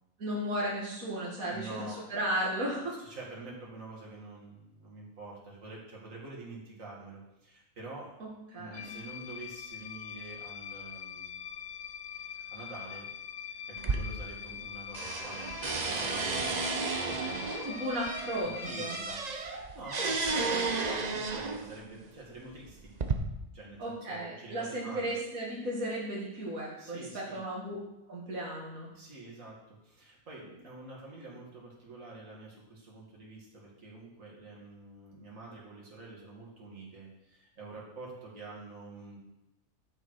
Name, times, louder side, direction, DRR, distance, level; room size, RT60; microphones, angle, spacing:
voice 1, 0.2-3.0 8.2-9.0 17.6-19.0 23.8-27.8 28.1-28.9, right 1 dB, 90° right, -5 dB, 2.4 m, -35 dB
voice 2, 1.5-2.0 3.0-8.1 8.5-11.3 12.1-13.1 13.5-16.8 17.1-17.6 18.4-22.9 23.5-25.2 26.8-27.4 28.9-39.2, right 2 dB, 70° right, -4 dB, 2.7 m, -47 dB
sound 1, 8.7-19.0, left 8 dB, 70° left, 1.1 m, -43 dB
sound 2, 13.8-14.7 14.9-21.8 22.5-23.1, right 4 dB, 40° right, 0.8 m, -33 dB
11.0 x 6.6 x 4.8 m, 0.91 s
omnidirectional pair, 1.4 m